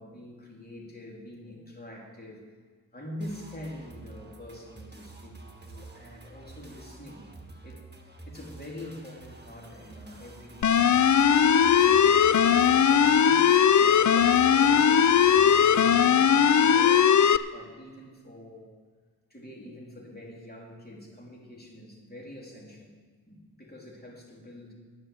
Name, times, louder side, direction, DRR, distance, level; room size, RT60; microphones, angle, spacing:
voice 1, 0.0-2.4 2.9-7.2 7.6-11.2 11.7-13.4 13.8-18.7 19.3-22.9 23.3-24.7, left 1 dB, 25° left, -2 dB, 3.3 m, -45 dB
sound 1, 3.2-15.9, right 3 dB, 25° right, 1.7 m, -49 dB
sound 2, 10.6-17.4, left 8 dB, 50° left, 0.4 m, -19 dB
10.0 x 10.0 x 7.7 m, 1.5 s
wide cardioid pair, 70°, 38 cm